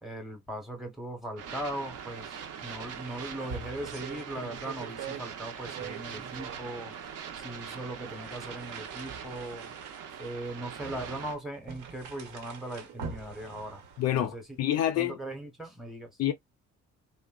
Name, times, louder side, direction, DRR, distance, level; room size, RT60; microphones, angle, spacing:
voice 1, 0.0-7.1 7.4-9.7 10.2-13.8 14.2-14.4 15.0-16.1, right 1 dB, ahead, 0.8 m, -39 dB
sound 1, 1.4-11.3, right 7 dB, 55° right, 0.7 m, -42 dB
sound 2, 1.8-2.1 2.4-2.5 2.9-5.3 5.6-6.6 7.3-7.4 8.1-14.1, right 5 dB, 85° right, 1.1 m, -44 dB
voice 2, 14.0-15.2 16.2-16.3, left 12 dB, 60° left, 0.5 m, -27 dB
3.7 x 2.1 x 2.2 m
cardioid pair, 175°, 29 cm